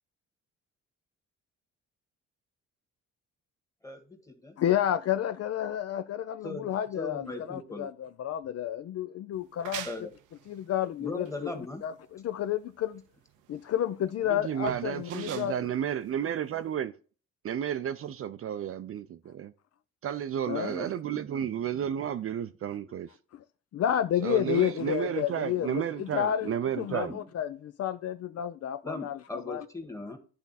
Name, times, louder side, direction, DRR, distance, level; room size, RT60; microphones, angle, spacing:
voice 1, 3.8-4.5 6.4-7.9 9.8-10.1 11.0-11.8 20.7-20.9 26.9-27.3 28.8-30.2, left 2 dB, 10° left, 1.6 m, -39 dB
voice 2, 4.6-9.9 10.5-13.0 13.5-15.5 20.5-20.7 23.7-29.7, left 10 dB, 55° left, 0.5 m, -31 dB
sound 1, 9.3-16.8, right 11 dB, 90° right, 0.6 m, -45 dB
voice 3, 14.3-16.9 17.4-19.5 20.0-23.1 24.2-27.1, right 9 dB, 50° right, 0.5 m, -32 dB
10.5 x 3.5 x 4.1 m
cardioid pair, 90°, 30 cm